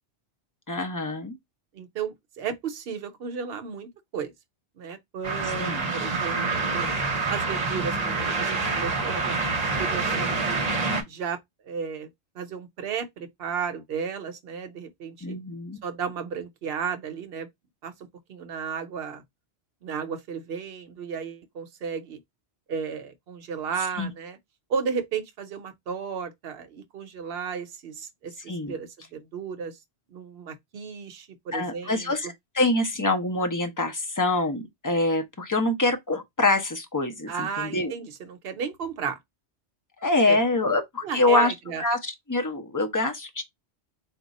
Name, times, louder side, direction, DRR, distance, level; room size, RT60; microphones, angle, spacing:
voice 1, 0.7-1.4 5.4-5.9 15.2-15.8 24.0-24.1 28.5-28.7 31.5-37.9 40.0-43.4, left 2 dB, 20° left, 0.6 m, -25 dB
voice 2, 1.7-4.3 4.8-6.9 7.3-9.5 9.8-10.6 11.1-11.4 11.7-12.1 12.4-15.4 15.8-17.5 17.8-17.9 18.3-19.2 19.8-22.2 22.7-24.4 24.7-29.8 30.1-32.1 37.3-39.2 40.3-40.4 41.0-41.8, right 6 dB, 65° right, 0.9 m, -34 dB
sound 1, 5.2-11.0, right 3 dB, 40° right, 0.9 m, -27 dB
3.6 x 2.3 x 4.1 m
omnidirectional pair, 1.1 m